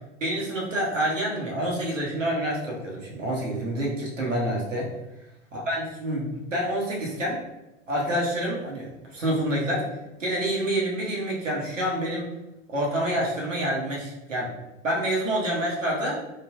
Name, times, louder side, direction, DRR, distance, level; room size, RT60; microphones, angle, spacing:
voice 1, 0.2-4.9 5.5-7.4 7.9-9.8 10.2-12.3 12.7-14.5 14.8-16.2, right 1 dB, 85° right, -3 dB, 0.8 m, -27 dB
3.2 x 2.1 x 2.3 m, 0.98 s
figure-of-eight pair, 85°, 37 cm